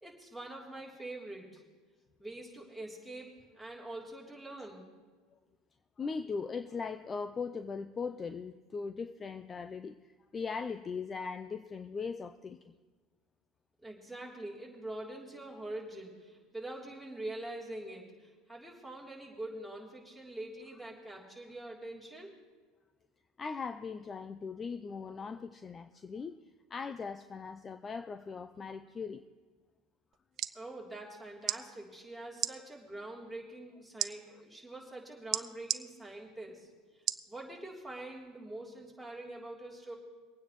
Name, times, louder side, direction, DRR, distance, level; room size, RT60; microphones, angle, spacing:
voice 1, 0.0-1.6 2.2-4.9 13.8-22.4 30.5-36.7 37.3-39.9, right 1 dB, ahead, -2 dB, 3.2 m, -44 dB
voice 2, 6.0-12.7 23.4-26.4 26.7-29.2, left 5 dB, 30° left, 11 dB, 0.5 m, -39 dB
sound 1, 30.1-30.6 31.4-31.6 32.4-32.5 34.0-34.1 35.3-35.8 37.1-37.3 37.9-38.0, right 12 dB, 50° right, 0.5 m, -32 dB
23.5 x 9.3 x 3.1 m, 1.4 s
hypercardioid pair, 90°, 0 cm